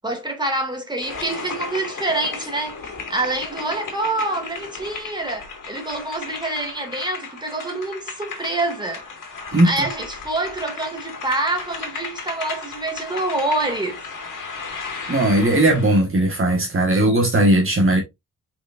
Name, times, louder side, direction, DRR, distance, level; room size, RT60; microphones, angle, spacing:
voice 1, 0.0-9.0 9.6-14.0, right 2 dB, 15° right, 2.4 m, -26 dB
sound 1, 1.0-16.0, left 4 dB, 65° left, 2.5 m, -35 dB
voice 2, 9.5-9.9 15.1-18.0, right 1 dB, 40° right, 1.6 m, -18 dB
7.1 x 5.2 x 2.6 m
wide cardioid pair, 115°, 34 cm